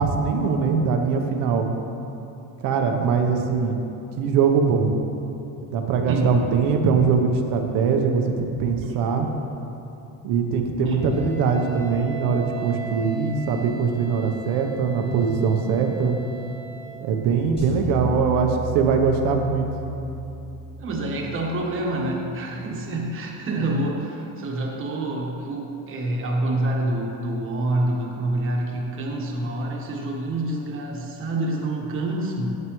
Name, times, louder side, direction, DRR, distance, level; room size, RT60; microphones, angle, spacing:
voice 1, 0.0-1.7 2.6-3.8 4.2-4.9 5.7-8.2 8.6-9.3 10.2-16.2 17.0-19.7, right 5 dB, 65° right, 4 dB, 0.9 m, -22 dB
voice 2, 6.1-6.4 8.8-9.0 10.8-11.1 20.8-32.6, right 1 dB, 35° right, -1 dB, 1.4 m, -27 dB
Wind instrument woodwind instrument, 10.9-17.1, right 3 dB, 5° right, 1.9 m, -39 dB
sound 1, 17.6-21.9, left 1 dB, 15° left, 1.8 m, -35 dB
11.0 x 8.0 x 3.1 m, 2.8 s
cardioid pair, 155°, 36 cm